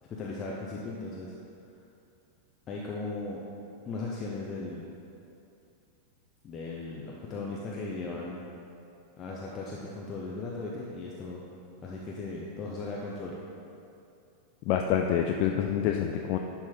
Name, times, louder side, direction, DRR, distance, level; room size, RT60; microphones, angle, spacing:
voice 1, 0.0-1.3 2.7-3.4 3.8-4.9 6.4-8.4 9.2-11.4 11.8-13.4, left 3 dB, 25° left, -4 dB, 0.8 m, -37 dB
voice 2, 14.7-16.4, left 9 dB, 45° left, 3 dB, 0.4 m, -27 dB
10.5 x 4.4 x 3.9 m, 2.7 s
figure-of-eight pair, 90°, 0 cm